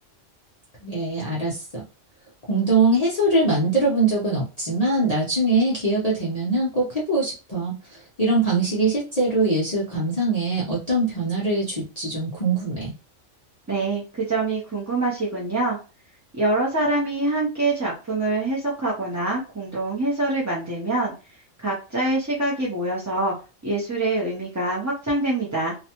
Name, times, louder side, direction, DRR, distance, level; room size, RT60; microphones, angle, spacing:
voice 1, 0.8-1.8 2.5-12.9, right 2 dB, 40° left, -5 dB, 0.6 m, -22 dB
voice 2, 13.7-15.8 16.3-21.1 21.6-23.3 23.6-25.7, right 2 dB, 25° right, -5 dB, 0.3 m, -25 dB
2.6 x 2.1 x 2.8 m, 0.32 s
omnidirectional pair, 1.3 m